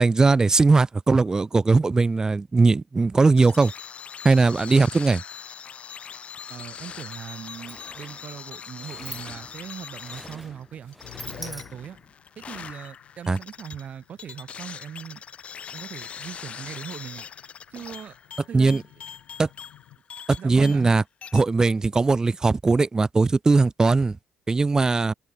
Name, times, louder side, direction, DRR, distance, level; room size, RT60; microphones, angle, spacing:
voice 1, 0.0-3.7 4.2-5.2 13.3-13.4 18.5-18.8 19.4-19.5 20.4-21.0 21.3-24.2 24.5-25.1, right 3 dB, 25° right, 0.4 m, -19 dB
sound 1, 3.4-21.0 21.2-21.4, left 7 dB, 50° left, 0.9 m, -41 dB
voice 2, 6.5-11.0 11.3-12.0 12.4-15.2 15.7-17.3 17.7-18.2 18.5-18.8 20.4-20.9, right 9 dB, 60° right, 0.8 m, -39 dB
Sliding door, 7.4-12.1, equal, 5° right, 4.8 m, -44 dB
sound 2, 9.3-20.0, left 16 dB, 80° left, 7.3 m, -54 dB
open air
supercardioid pair, 55°, 3 cm